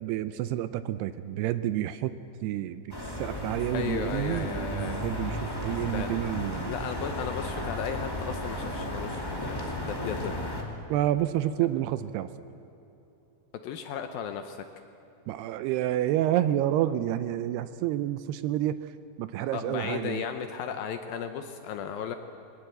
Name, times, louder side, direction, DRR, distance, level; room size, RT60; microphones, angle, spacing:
voice 1, 0.0-6.7 10.9-12.3 15.3-18.9 19.2-20.2, right 12 dB, 80° right, 12 dB, 2.5 m, -29 dB
sound 1, 2.9-10.6, left 1 dB, 10° left, 1.0 m, -34 dB
voice 2, 3.7-5.1 5.9-6.1 6.7-10.4 13.5-14.6 19.4-22.2, left 7 dB, 75° left, 7 dB, 2.3 m, -35 dB
22.5 x 19.5 x 7.9 m, 2.8 s
omnidirectional pair, 4.9 m